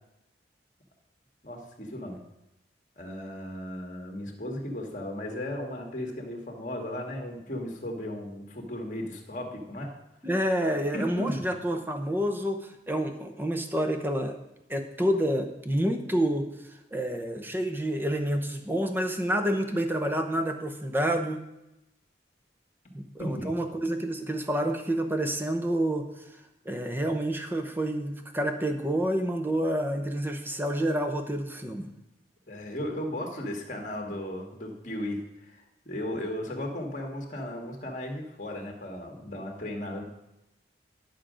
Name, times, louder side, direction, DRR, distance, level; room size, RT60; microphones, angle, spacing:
voice 1, 1.4-2.2 3.0-9.9 10.9-11.4 23.2-23.6 32.5-40.0, left 1 dB, 45° left, 2 dB, 1.8 m, -35 dB
voice 2, 10.2-14.4 14.7-16.5 16.9-21.4 22.9-26.1 26.6-31.9, right 1 dB, 10° right, 6 dB, 0.8 m, -28 dB
11.0 x 6.4 x 5.1 m, 0.89 s
head